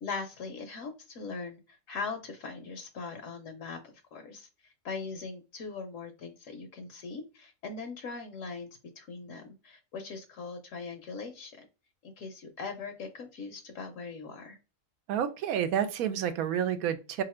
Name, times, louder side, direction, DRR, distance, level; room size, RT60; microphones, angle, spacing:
voice 1, 0.0-8.7 9.0-11.7 12.0-14.6, left 4 dB, 70° left, 6 dB, 0.9 m, -40 dB
voice 2, 15.1-17.2, right 9 dB, 90° right, 9 dB, 1.0 m, -29 dB
2.9 x 2.5 x 4.1 m, 0.31 s
omnidirectional pair, 1.5 m